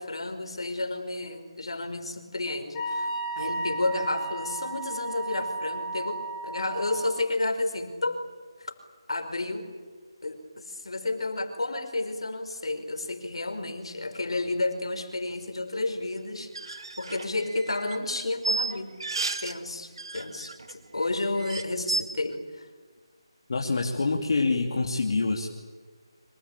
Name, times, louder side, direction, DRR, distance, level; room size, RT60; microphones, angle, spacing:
voice 1, 0.0-3.1 3.4-8.2 8.6-8.7 9.1-9.7 10.2-18.9 19.4-22.7, left 2 dB, 75° left, 7 dB, 5.2 m, -31 dB
Wind instrument woodwind instrument, 2.7-7.2, right 2 dB, 20° left, 6.6 m, -34 dB
sound 1, 16.4-19.6 19.8-20.7 21.0-21.1 21.4-22.0, right 3 dB, 65° right, 2.2 m, -32 dB
voice 2, 23.5-25.5, left 3 dB, 60° left, 1 dB, 2.9 m, -26 dB
26.5 x 25.5 x 8.5 m, 1.5 s
figure-of-eight pair, 160°, 3 cm